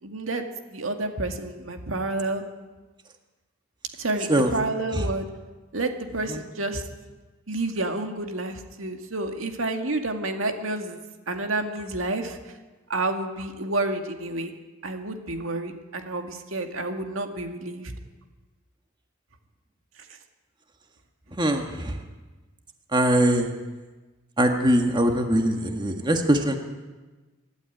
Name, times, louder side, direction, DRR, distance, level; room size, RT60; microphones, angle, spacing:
voice 1, 0.0-2.4 4.0-5.3 5.7-6.9 7.5-11.0 11.3-12.6 12.9-14.5 14.8-17.9, right 2 dB, 90° right, 5 dB, 2.1 m, -29 dB
voice 2, 4.2-4.5 4.9-5.0 6.3-6.4 21.4-22.0 22.9-23.5 24.4-26.6, right 1 dB, 20° right, 4 dB, 1.6 m, -22 dB
25.0 x 12.0 x 9.3 m, 1.2 s
head